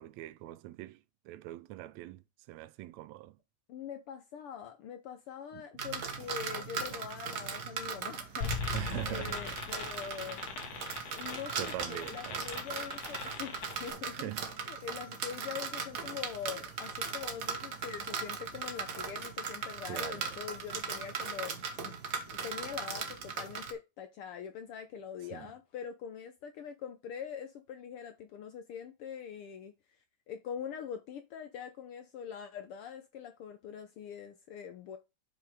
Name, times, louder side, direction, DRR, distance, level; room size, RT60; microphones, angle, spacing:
voice 1, 0.0-2.2 2.5-3.4 5.5-5.6 8.7-9.4 11.5-12.4 14.0-14.5 19.9-20.3 25.3-25.5, right 16 dB, 80° right, 1.8 m, -42 dB
voice 2, 3.7-8.5 8.9-10.4 11.1-14.3 14.7-21.9 22.3-29.7 30.3-35.0, left 8 dB, 75° left, 1.3 m, -43 dB
sound 1, 5.8-23.7, right 5 dB, 55° right, 1.1 m, -39 dB
sound 2, 8.4-13.9, left 5 dB, 60° left, 2.5 m, -40 dB
6.3 x 5.7 x 4.8 m
omnidirectional pair, 3.4 m